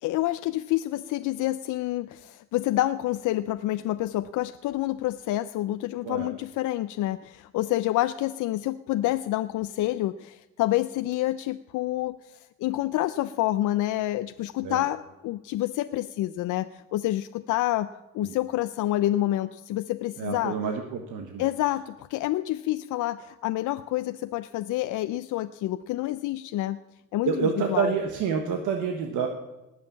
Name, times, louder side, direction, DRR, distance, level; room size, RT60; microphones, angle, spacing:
voice 1, 0.0-17.9 18.1-20.6 21.4-26.8 27.1-27.9, left 15 dB, 85° left, 11 dB, 0.5 m, -28 dB
voice 2, 20.2-21.5 27.2-29.3, right 6 dB, 85° right, 3 dB, 1.3 m, -28 dB
19.0 x 6.6 x 7.2 m, 1.1 s
cardioid pair, 90°, 30 cm